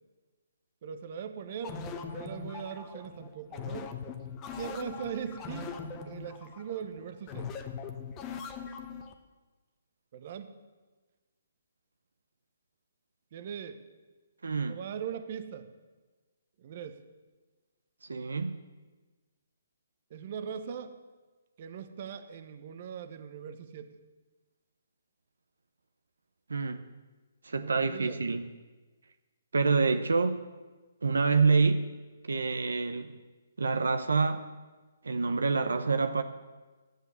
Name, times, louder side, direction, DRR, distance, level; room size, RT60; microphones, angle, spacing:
voice 1, 0.8-4.0 4.5-5.8 6.1-7.5 10.1-10.5 13.3-13.8 14.7-15.7 16.6-17.0 20.1-21.0 21.6-24.0 27.6-28.2, right 7 dB, 45° right, 10 dB, 1.0 m, -40 dB
sound 1, 1.6-9.1, left 5 dB, 25° left, 1.0 m, -41 dB
voice 2, 14.4-14.8 18.0-18.6 26.5-26.8 27.4-28.5 29.5-30.4 31.0-31.9 32.2-33.1 33.6-34.5 35.0-36.2, right 4 dB, 85° right, 9 dB, 0.8 m, -27 dB
12.5 x 8.0 x 8.2 m, 1.3 s
hypercardioid pair, 145°, 0 cm